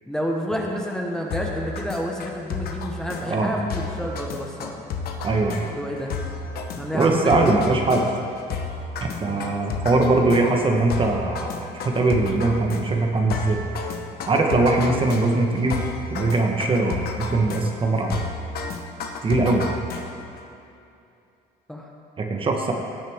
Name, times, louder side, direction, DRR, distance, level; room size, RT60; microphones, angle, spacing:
voice 1, 0.1-4.8 5.7-6.2 6.7-7.7 9.2-9.5 14.9-15.1 21.7-21.9, equal, 5° left, -1 dB, 1.0 m, -29 dB
sound 1, 1.3-20.4, left 4 dB, 65° left, 1.0 m, -32 dB
voice 2, 5.2-5.7 6.9-8.0 9.0-13.6 14.3-15.8 16.1-18.2 19.2-19.6 22.2-22.7, right 2 dB, 30° right, 2 dB, 1.1 m, -21 dB
17.0 x 6.5 x 3.6 m, 2.6 s
cardioid pair, 110°, 17 cm